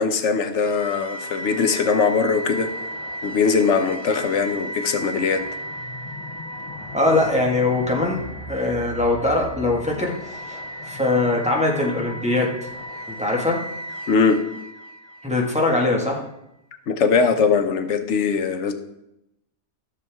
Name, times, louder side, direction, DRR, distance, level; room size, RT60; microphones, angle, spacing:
voice 1, 0.0-2.7 3.2-5.4 14.1-14.4 16.9-18.7, left 5 dB, 85° left, 8 dB, 1.2 m, -21 dB
sound 1, 0.6-15.8, equal, 30° left, 0.5 m, -35 dB
voice 2, 6.9-8.2 8.5-10.1 10.5-10.6 10.9-12.5 13.1-13.6 15.2-16.2, left 2 dB, 5° right, -2 dB, 1.6 m, -21 dB
13.5 x 7.0 x 3.5 m, 0.85 s
omnidirectional pair, 1.2 m